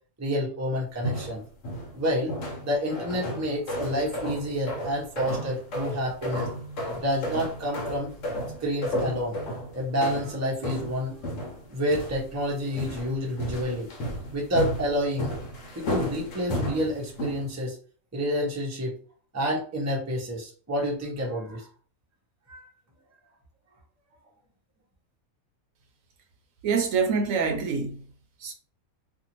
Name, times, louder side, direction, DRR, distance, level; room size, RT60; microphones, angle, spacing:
voice 1, 0.2-1.4 1.9-2.3 2.6-6.5 6.9-8.1 8.6-9.4 9.7-11.2 11.7-13.9 14.3-15.4 15.8-17.8 18.1-19.0 19.3-21.7 22.5-22.7, equal, 15° right, 0.6 m, -29 dB
sound 1, 1.0-2.0 2.3-17.5, equal, 65° left, 1.1 m, -33 dB
voice 2, 26.6-28.1 28.4-28.5, right 5 dB, 70° right, 0.9 m, -25 dB
2.6 x 2.5 x 2.9 m
omnidirectional pair, 1.5 m